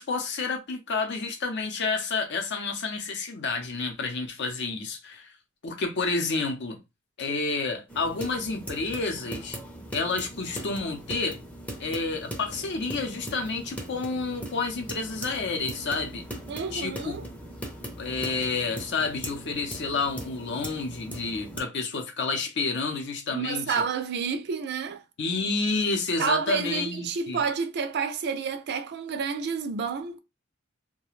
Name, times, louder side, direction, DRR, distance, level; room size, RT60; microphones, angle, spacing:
voice 1, 0.0-5.3 5.6-6.8 7.2-9.6 9.9-11.4 11.8-16.2 16.7-17.3 18.0-23.8 25.2-27.4, left 4 dB, 60° left, 0.6 m, -30 dB
sound 1, 7.9-21.6, equal, 5° left, 0.5 m, -40 dB
voice 2, 16.5-17.2 23.3-25.0 26.2-30.2, right 6 dB, 55° right, 0.4 m, -29 dB
2.3 x 2.2 x 3.1 m
head